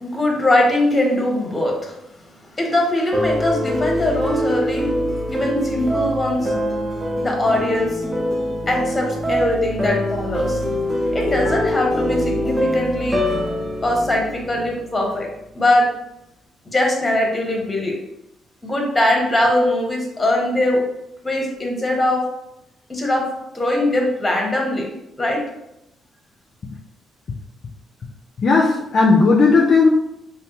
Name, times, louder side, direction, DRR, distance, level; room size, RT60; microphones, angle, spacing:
voice 1, 0.0-1.9 2.6-4.9 5.2-6.5 7.2-8.0 8.7-10.6 11.1-13.2 13.8-15.3 15.5-15.9 16.6-17.9 18.6-20.8 21.2-22.2 22.9-23.2 23.5-24.9 25.2-25.4, left 1 dB, 20° left, 0 dB, 1.0 m, -21 dB
sound 1, 3.1-15.3, equal, 15° right, 0.7 m, -24 dB
voice 2, 28.4-29.9, left 4 dB, 50° left, -1 dB, 0.4 m, -14 dB
3.4 x 2.1 x 2.9 m, 0.86 s
cardioid pair, 90°, 0 cm